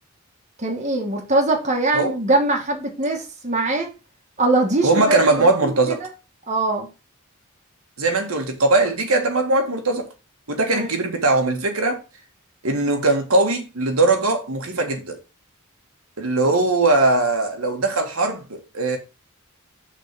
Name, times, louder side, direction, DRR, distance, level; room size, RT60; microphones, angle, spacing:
voice 1, 0.6-3.9 4.4-6.1 6.5-6.9 10.7-10.9, right 2 dB, 35° right, 1.8 m, -22 dB
voice 2, 4.8-6.1 8.0-10.1 10.5-12.0 12.6-15.2 16.2-19.0, right 2 dB, 80° right, 1.6 m, -20 dB
6.4 x 4.2 x 5.9 m
head